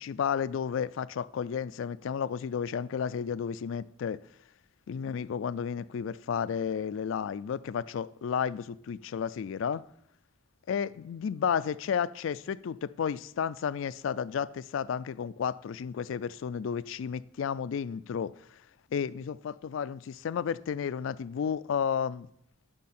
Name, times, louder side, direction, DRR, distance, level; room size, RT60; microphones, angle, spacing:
voice 1, 0.0-4.2 4.9-9.8 10.7-18.3 18.9-22.3, left 7 dB, 75° left, 0.3 m, -32 dB
12.0 x 5.5 x 4.3 m
head